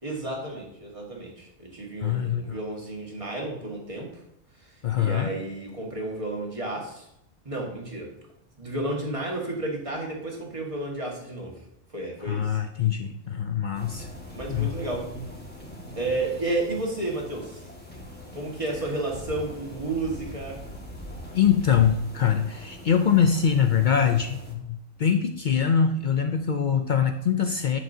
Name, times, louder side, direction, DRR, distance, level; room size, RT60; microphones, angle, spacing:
voice 1, 0.0-4.2 4.6-7.1 7.5-8.1 8.6-11.6 11.9-12.6 14.3-15.1 16.0-17.6 18.3-20.6, right 2 dB, 25° right, -2 dB, 1.8 m, -32 dB
voice 2, 2.0-2.6 4.8-5.3 12.3-14.1 14.5-14.8 21.3-27.8, left 7 dB, 65° left, 7 dB, 0.4 m, -23 dB
sound 1, 13.7-24.5, left 1 dB, 5° left, 1.6 m, -41 dB
10.5 x 6.3 x 2.8 m, 0.78 s
omnidirectional pair, 1.3 m